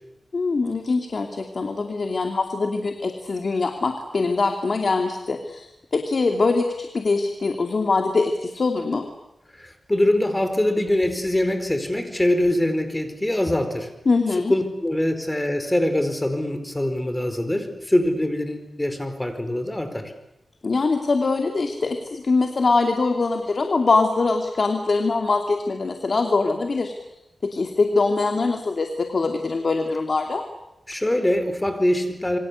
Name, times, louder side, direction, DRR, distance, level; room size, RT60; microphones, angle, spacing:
voice 1, 0.3-9.1 14.1-14.5 20.6-26.9 27.4-30.4, left 3 dB, 55° left, 4 dB, 2.6 m, -23 dB
voice 2, 9.5-13.9 14.5-20.1 30.9-32.4, left 1 dB, 15° left, 8 dB, 4.6 m, -23 dB
27.5 x 24.0 x 8.4 m, 0.89 s
wide cardioid pair, 80°, 0 cm